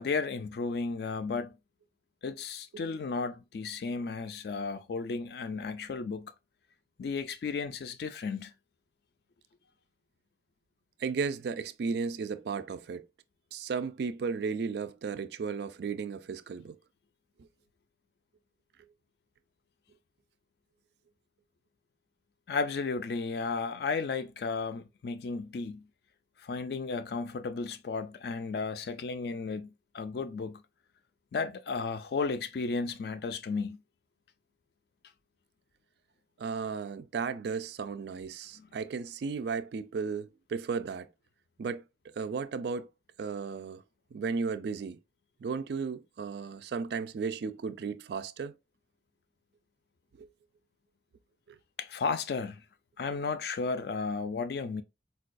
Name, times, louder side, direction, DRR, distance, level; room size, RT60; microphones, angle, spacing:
voice 1, 0.0-1.5 2.2-6.3 7.0-8.5 22.5-25.8 26.4-30.6 31.3-33.8 38.6-38.7 51.8-52.6 53.0-54.8, left 4 dB, 55° left, 0.3 m, -34 dB
voice 2, 11.0-13.1 13.5-16.8 36.4-41.1 41.6-41.8 42.2-42.9 43.2-43.8 44.1-45.0 45.4-48.5 50.2-50.3, right 5 dB, 60° right, 0.3 m, -34 dB
4.4 x 2.3 x 2.5 m
head